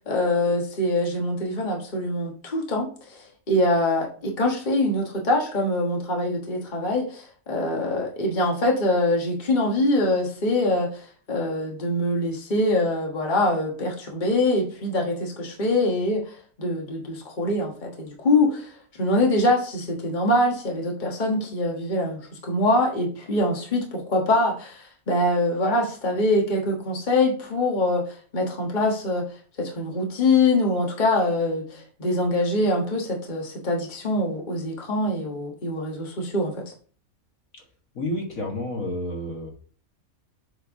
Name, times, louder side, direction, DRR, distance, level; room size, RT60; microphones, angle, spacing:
voice 1, 0.0-16.3 16.6-18.7 19.0-29.2 29.6-36.7, left 1 dB, 35° left, 0 dB, 1.5 m, -24 dB
voice 2, 37.9-39.5, left 1 dB, 70° left, 1 dB, 2.2 m, -30 dB
7.6 x 4.6 x 3.6 m, 0.41 s
omnidirectional pair, 1.5 m